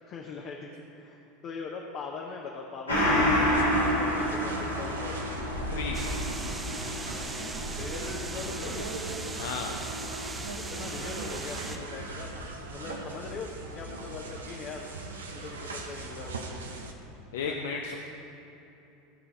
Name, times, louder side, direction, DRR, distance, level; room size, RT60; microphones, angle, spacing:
voice 1, 0.1-5.1 7.8-8.9 10.6-14.9 15.4-16.4 17.4-17.6, left 4 dB, 40° left, 0 dB, 0.9 m, -41 dB
Gong, 2.9-11.8 12.2-12.3, left 1 dB, 85° left, 2.2 m, -30 dB
sound 1, 2.9-16.9, right 2 dB, 75° right, 0.9 m, -39 dB
sound 2, 5.9-11.8, right 3 dB, 15° right, 0.6 m, -39 dB
voice 2, 9.4-9.7 17.3-17.9, left 5 dB, 65° left, 1 dB, 0.6 m, -33 dB
16.0 x 5.6 x 4.2 m, 3.0 s
figure-of-eight pair, 80°, 0 cm